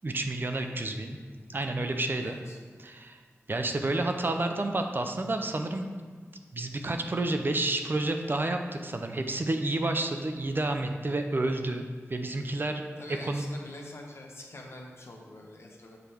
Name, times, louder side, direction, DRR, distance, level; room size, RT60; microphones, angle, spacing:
voice 1, 0.0-1.2 1.5-2.4 2.8-3.2 3.5-5.9 6.5-12.9 13.2-13.4, right 2 dB, 45° right, 5 dB, 0.5 m, -30 dB
voice 2, 2.2-2.6 13.0-16.0, left 1 dB, 60° left, 0 dB, 1.0 m, -45 dB
7.1 x 3.3 x 4.4 m, 1.5 s
cardioid pair, 50°, 5 cm